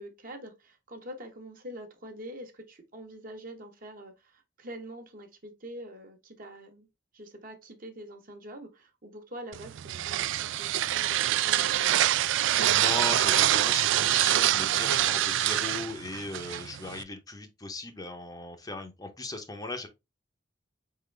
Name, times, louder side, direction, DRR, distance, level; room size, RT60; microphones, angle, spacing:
voice 1, 0.0-6.9 7.1-12.1, equal, 45° right, 1.0 m, -45 dB
sound 1, 9.5-17.0, right 13 dB, 80° right, 0.3 m, -25 dB
voice 2, 12.6-19.9, left 2 dB, 20° left, 0.6 m, -37 dB
4.3 x 3.8 x 3.2 m
head